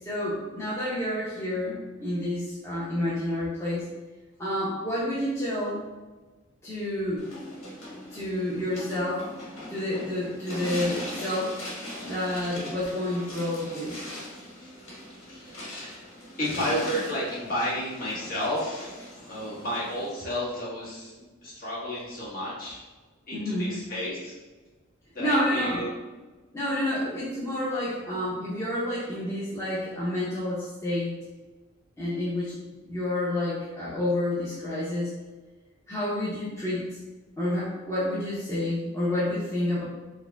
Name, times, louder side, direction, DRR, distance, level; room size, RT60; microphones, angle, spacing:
voice 1, 0.0-3.8 4.4-5.8 6.6-7.2 8.1-9.3 9.7-11.5 12.0-14.0 23.3-23.8 25.2-25.9 26.5-31.1 32.0-32.5 32.8-35.1 35.9-36.9 37.4-39.8, left 1 dB, 15° left, -9 dB, 0.7 m, -29 dB
sound 1, 7.2-20.1, left 1 dB, 85° left, 1.2 m, -40 dB
voice 2, 15.3-16.0 16.4-22.8 23.3-24.3 25.1-25.9, equal, 45° left, -7 dB, 1.3 m, -32 dB
4.8 x 2.2 x 3.3 m, 1.2 s
head